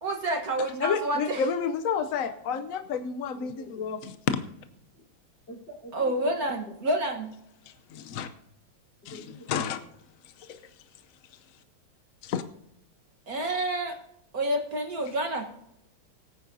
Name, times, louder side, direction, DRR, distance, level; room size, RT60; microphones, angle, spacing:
voice 1, 0.0-1.5 5.9-7.3 13.3-14.0 14.3-15.5, right 1 dB, 50° right, 3 dB, 1.5 m, -28 dB
voice 2, 0.8-4.0 4.3-4.4 7.9-8.3 9.5-9.8 10.5-10.6 12.2-12.4, left 6 dB, 75° left, 10 dB, 0.7 m, -29 dB
voice 3, 3.3-4.0 4.9-5.0 5.5-6.7 7.6-7.7 9.0-9.9 12.5-12.6, equal, 60° left, -3 dB, 4.6 m, -47 dB
21.0 x 9.5 x 2.7 m, 0.80 s
omnidirectional pair, 2.3 m